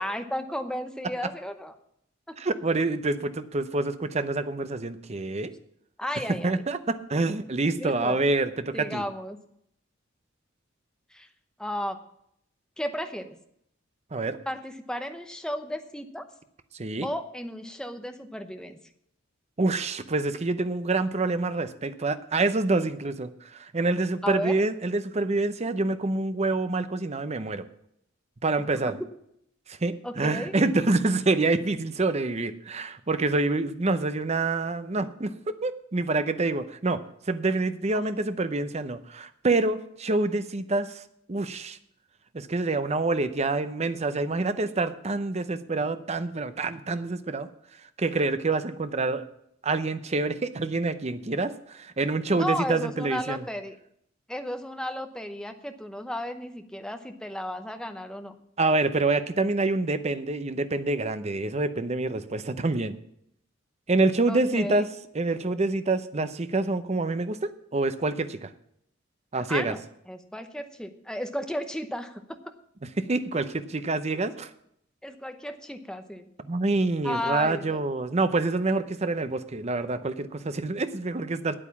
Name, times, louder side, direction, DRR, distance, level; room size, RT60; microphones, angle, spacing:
voice 1, 0.0-1.7 2.3-2.4 6.0-6.6 7.8-8.2 8.7-9.4 11.1-11.3 11.6-12.0 12.8-13.4 14.5-16.3 17.0-18.8 24.2-24.6 28.9-29.0 30.0-30.5 52.3-53.8 54.3-58.3 64.3-64.8 69.3-69.8 70.1-72.5 75.0-76.3 77.0-77.8, left 1 dB, 5° left, 7 dB, 0.8 m, -34 dB
voice 2, 2.4-5.5 6.4-9.0 14.1-14.4 16.8-17.1 19.6-27.6 28.4-28.9 29.7-35.3 35.6-37.0 37.3-41.0 41.3-41.8 42.3-47.5 48.0-49.3 49.6-53.4 58.6-63.0 63.9-64.9 65.1-68.5 69.3-69.7 73.0-74.5 76.5-81.6, right 3 dB, 35° right, 11 dB, 0.7 m, -27 dB
9.1 x 8.5 x 7.2 m, 0.74 s
head